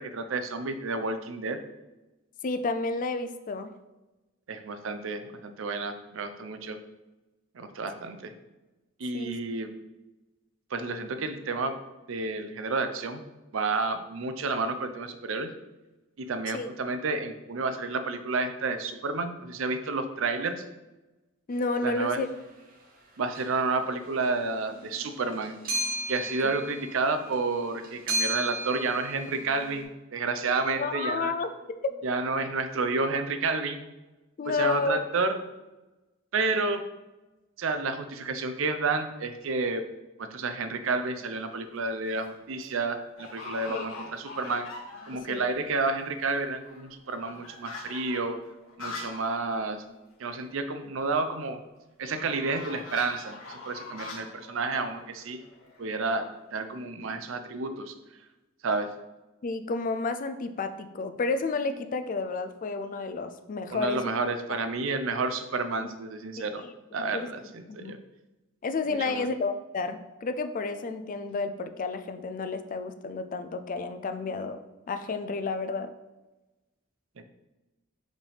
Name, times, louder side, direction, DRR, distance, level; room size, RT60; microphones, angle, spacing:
voice 1, 0.0-1.6 4.5-6.8 7.5-8.3 9.0-9.7 10.7-11.8 12.1-13.2 13.5-15.5 16.2-20.6 21.8-22.2 23.2-25.6 26.1-31.3 32.0-33.8 34.5-35.4 36.3-36.9 37.6-39.8 40.2-44.7 45.0-48.4 48.8-49.8 50.2-51.6 52.0-55.4 55.8-57.9 58.6-58.9 63.7-66.6 66.9-68.0 69.1-69.3 77.2-77.3, right 3 dB, 70° right, 8 dB, 0.6 m, -30 dB
voice 2, 2.4-3.7 9.1-9.4 16.5-16.7 21.5-22.3 30.8-32.0 34.4-35.0 43.7-43.9 45.1-45.5 59.4-64.0 64.8-64.9 66.6-66.7 67.0-67.3 67.7-67.9 68.6-74.6 74.9-75.9, left 3 dB, 40° left, 10 dB, 0.4 m, -31 dB
sound 1, 22.1-22.2 23.3-23.7 24.0-29.8, right 1 dB, 45° right, 1.0 m, -35 dB
sound 2, 40.9-41.3 41.8-42.3 42.6-42.7 43.2-45.4 45.7-45.8 46.0-49.4 49.7-49.8 50.1-50.2 52.1-55.8, left 3 dB, 85° left, 1.4 m, -43 dB
5.1 x 3.4 x 5.6 m, 1.1 s
head